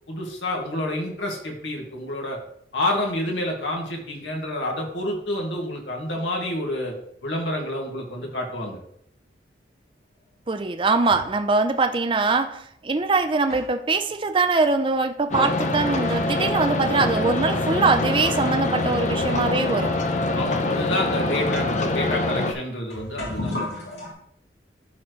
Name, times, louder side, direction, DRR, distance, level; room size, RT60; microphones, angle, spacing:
voice 1, 0.1-2.4 2.7-7.0 7.2-8.8 20.3-23.7, left 1 dB, 90° left, 0 dB, 2.1 m, -28 dB
sound 1, 10.4-11.4 12.4-12.5 13.1-16.6 16.9-17.0 17.8-17.9 18.7-18.8 19.2-24.1, left 2 dB, 65° left, 3.3 m, -38 dB
voice 2, 10.5-19.9, right 3 dB, 30° right, 7 dB, 0.5 m, -22 dB
sound 2, 15.3-22.5, left 2 dB, 40° left, 0.7 m, -24 dB
13.0 x 4.4 x 3.2 m, 0.70 s
head